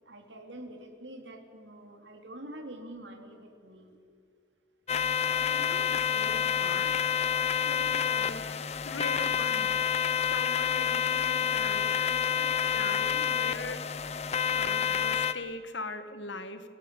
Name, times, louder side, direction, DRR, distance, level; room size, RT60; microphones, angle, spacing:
voice 1, 0.0-4.0, right 1 dB, 80° right, 4 dB, 3.5 m, -46 dB
sound 1, 4.9-15.3, left 8 dB, 35° left, 0.8 m, -28 dB
voice 2, 5.4-7.0 7.5-9.7 10.2-13.8 14.5-16.7, left 3 dB, 80° left, 10 dB, 1.9 m, -41 dB
26.5 x 16.0 x 9.2 m, 2.2 s
head